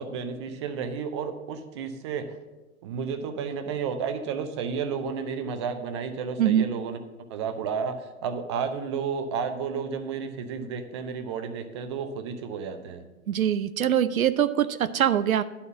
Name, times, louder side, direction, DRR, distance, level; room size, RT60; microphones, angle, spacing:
voice 1, 0.0-2.4 2.8-7.0 7.3-13.0, right 6 dB, 20° right, 8 dB, 0.4 m, -32 dB
voice 2, 13.3-15.4, right 10 dB, 75° right, 13 dB, 0.5 m, -23 dB
10.5 x 4.2 x 7.1 m, 1.1 s
figure-of-eight pair, 110°, 43 cm